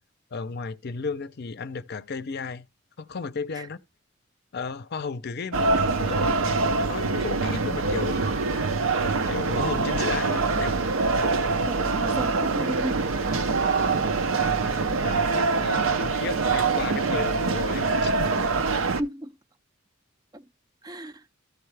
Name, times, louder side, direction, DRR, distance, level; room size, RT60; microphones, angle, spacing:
voice 1, 0.3-2.7 3.0-3.8 4.5-6.4 6.9-8.2 8.5-8.7 9.3-10.8 14.2-18.5, left 4 dB, 55° left, 0.6 m, -34 dB
sound 1, 5.5-19.0, right 4 dB, 85° right, 0.7 m, -24 dB
voice 2, 11.6-13.0 19.0-19.3 20.3-20.4 20.8-21.2, right 1 dB, 20° right, 0.4 m, -33 dB
14.0 x 4.7 x 3.3 m
head